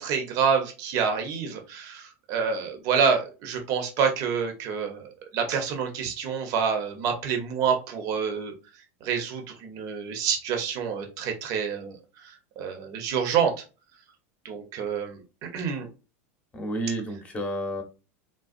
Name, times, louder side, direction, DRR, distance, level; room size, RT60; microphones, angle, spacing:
voice 1, 0.0-8.5 9.0-13.6 14.4-15.9, right 6 dB, 50° right, 0.8 m, -28 dB
voice 2, 16.5-17.8, right 1 dB, 15° left, 0.8 m, -30 dB
3.8 x 2.2 x 2.5 m
supercardioid pair, 125°, 7 cm